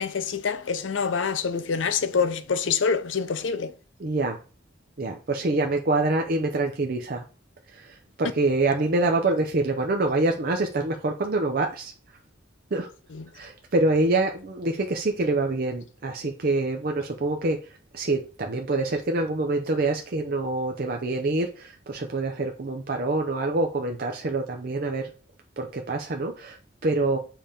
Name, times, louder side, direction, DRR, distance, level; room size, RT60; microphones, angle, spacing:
voice 1, 0.0-3.7 8.2-8.3 13.1-13.3, left 6 dB, 85° left, 0.6 m, -26 dB
voice 2, 4.0-4.4 5.0-7.2 7.7-11.9 12.7-12.9 13.3-25.1 25.6-27.2, right 2 dB, 50° right, 0.6 m, -26 dB
7.4 x 2.9 x 5.1 m
head